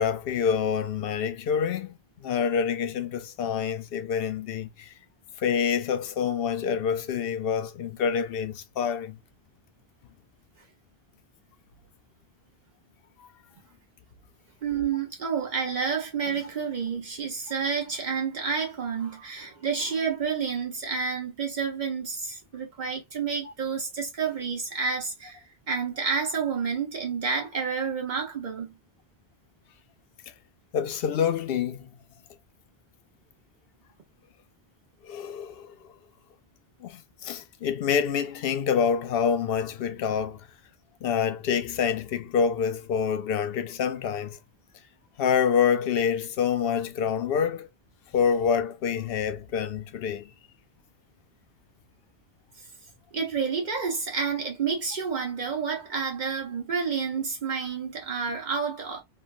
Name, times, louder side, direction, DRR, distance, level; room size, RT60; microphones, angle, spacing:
voice 1, 0.0-5.0 5.4-9.2 13.2-13.3 30.7-31.9 35.0-35.7 36.8-40.5 41.0-44.4 45.2-47.7 48.1-50.3, left 7 dB, 70° left, 0.8 m, -27 dB
voice 2, 14.6-25.4 25.7-28.8 53.1-59.0, right 5 dB, 50° right, 1.2 m, -29 dB
3.2 x 2.3 x 2.4 m
omnidirectional pair, 1.0 m